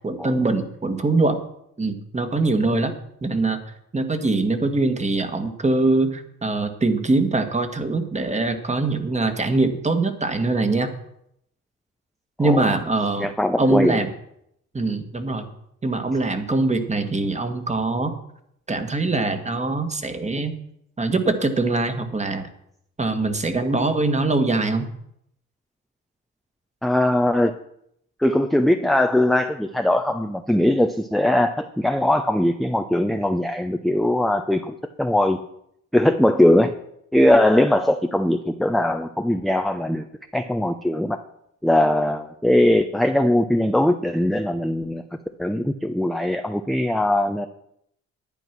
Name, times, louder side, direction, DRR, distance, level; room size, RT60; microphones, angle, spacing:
voice 1, 0.0-1.4 1.8-2.9 3.2-3.6 3.9-10.9 12.4-13.3 13.6-14.1 14.7-15.5 15.8-18.1 18.7-20.6 21.0-22.5 23.0-24.9, right 3 dB, 25° right, 8 dB, 1.7 m, -22 dB
voice 2, 12.4-12.8 13.2-14.0 26.8-27.5 28.2-35.4 35.9-36.7 37.1-40.0 40.3-41.2 41.6-45.0 45.4-47.5, left 1 dB, ahead, 6 dB, 0.7 m, -20 dB
11.0 x 9.1 x 6.1 m, 0.75 s
cardioid pair, 90°, 30 cm